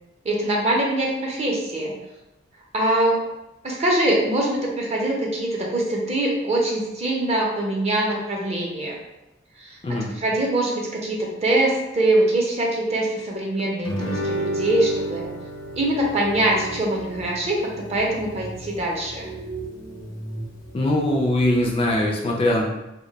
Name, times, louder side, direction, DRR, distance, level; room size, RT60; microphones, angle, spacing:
voice 1, 0.2-1.9 2.7-3.2 3.6-9.0 9.6-9.8 10.2-15.3 15.7-19.3, right 1 dB, 30° right, -2 dB, 0.6 m, -23 dB
Guitar, 13.8-18.9, right 1 dB, 70° left, 0.6 m, -31 dB
sound 1, 15.6-22.0, right 2 dB, 70° right, 0.6 m, -38 dB
voice 2, 20.7-22.7, left 1 dB, 30° left, -1 dB, 0.3 m, -21 dB
2.2 x 2.1 x 3.8 m, 0.93 s
head